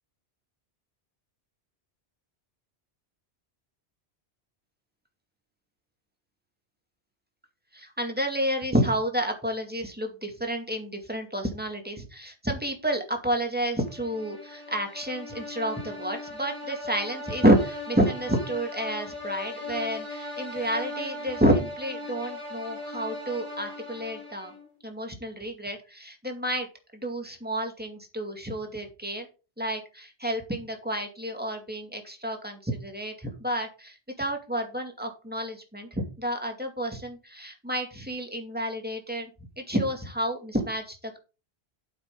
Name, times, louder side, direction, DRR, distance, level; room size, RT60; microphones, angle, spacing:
voice 1, 7.7-24.5 24.8-26.7 26.9-29.3 29.6-39.3 39.6-41.2, right 1 dB, 10° right, 3 dB, 2.2 m, -29 dB
sound 1, 13.8-24.7, left 2 dB, 25° right, 4.0 m, -38 dB
9.4 x 8.0 x 3.8 m, 0.31 s
omnidirectional pair, 1.1 m